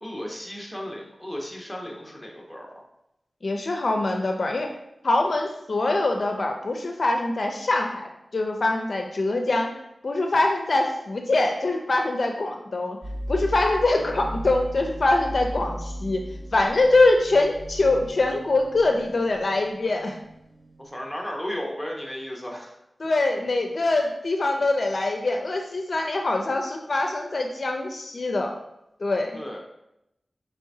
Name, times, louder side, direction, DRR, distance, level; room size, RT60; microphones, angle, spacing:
voice 1, 0.0-2.8 20.8-22.8 29.3-29.6, equal, 5° left, -1 dB, 1.0 m, -34 dB
voice 2, 3.4-4.7 5.0-9.7 10.0-13.0 13.3-20.2 23.0-28.5 29.0-29.3, left 2 dB, 65° left, 3 dB, 0.4 m, -23 dB
sound 1, 13.0-21.0, equal, 35° right, 0.4 m, -37 dB
4.7 x 3.3 x 2.7 m, 0.84 s
cardioid pair, 50°, 0 cm